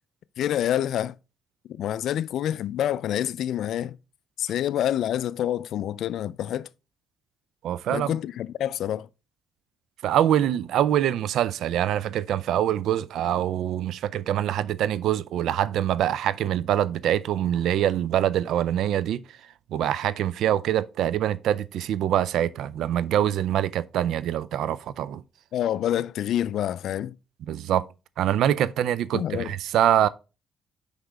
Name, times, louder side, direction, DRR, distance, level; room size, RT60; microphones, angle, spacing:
voice 1, 0.4-1.1 1.8-4.0 4.4-6.7 7.9-9.1 25.5-27.2 29.1-29.5, left 11 dB, 75° left, 0.3 m, -27 dB
voice 2, 7.6-8.1 10.0-19.2 19.7-25.2 27.5-27.9 28.2-30.1, right 11 dB, 80° right, 0.4 m, -24 dB
6.4 x 4.9 x 3.4 m
cardioid pair, 90°, 0 cm